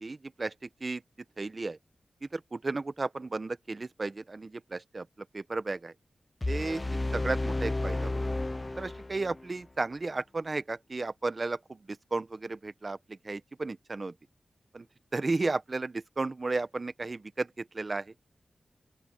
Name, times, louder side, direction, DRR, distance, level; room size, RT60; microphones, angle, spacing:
voice 1, 0.0-0.5 0.8-1.0 1.4-1.8 2.3-5.1 5.3-5.9 6.5-6.8 7.1-8.2 8.8-11.6 12.1-13.0 13.2-14.1 14.7-14.8 15.1-17.5 17.7-18.0, right 3 dB, 40° right, 0.9 m, -33 dB
sound 1, 6.4-9.5, left 2 dB, 25° left, 0.3 m, -32 dB
open air
wide cardioid pair, 95°, 0 cm